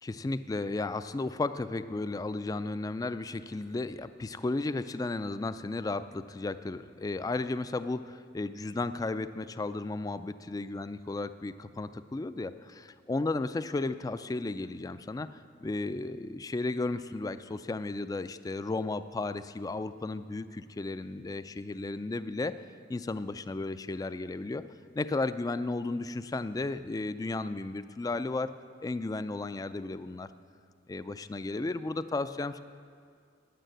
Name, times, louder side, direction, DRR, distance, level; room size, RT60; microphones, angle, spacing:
voice 1, 0.0-22.5 22.9-24.6 24.9-28.5 28.8-30.3 30.9-32.6, left 2 dB, 20° left, 13 dB, 0.3 m, -34 dB
9.5 x 9.1 x 7.7 m, 2.2 s
head